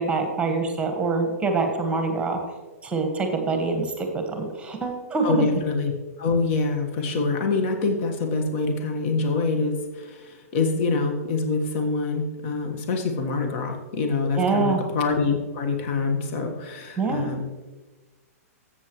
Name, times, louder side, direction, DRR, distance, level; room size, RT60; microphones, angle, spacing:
voice 1, 0.0-2.4 2.8-5.4 14.4-14.8 17.0-17.3, right 3 dB, 15° right, 4 dB, 1.4 m, -25 dB
voice 2, 5.2-5.9 6.2-17.4, left 3 dB, 50° left, 4 dB, 1.4 m, -25 dB
13.5 x 8.1 x 3.1 m, 1.2 s
hypercardioid pair, 120°, 8 cm